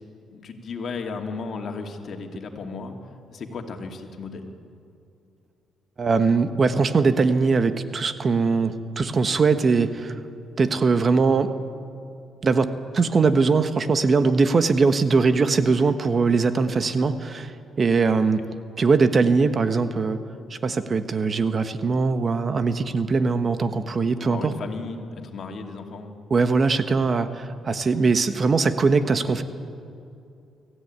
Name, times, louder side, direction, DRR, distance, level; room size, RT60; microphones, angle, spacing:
voice 1, 0.3-2.9 3.3-4.5 24.2-26.1 27.9-28.1, left 4 dB, 55° left, 3 dB, 2.6 m, -35 dB
voice 2, 6.0-10.2 10.6-11.5 12.4-12.7 12.9-18.4 18.8-20.2 20.5-24.5 26.3-29.4, right 4 dB, 40° right, 10 dB, 1.2 m, -21 dB
23.5 x 14.5 x 9.5 m, 2.6 s
cardioid pair, 90°, 0 cm